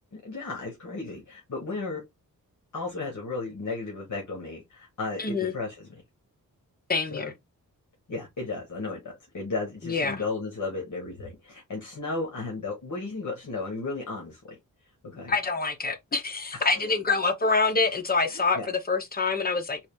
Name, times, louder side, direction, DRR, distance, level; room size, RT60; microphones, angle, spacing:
voice 1, 0.1-2.0 2.7-5.9 7.1-7.3 8.1-14.6 15.0-15.3 16.5-16.8 18.3-18.6, left 3 dB, 55° left, 1.6 m, -34 dB
voice 2, 5.2-5.5 6.9-7.3 9.8-10.2 15.3-19.8, left 4 dB, 25° left, 0.8 m, -26 dB
4.1 x 2.5 x 3.4 m
wide cardioid pair, 140°, 35 cm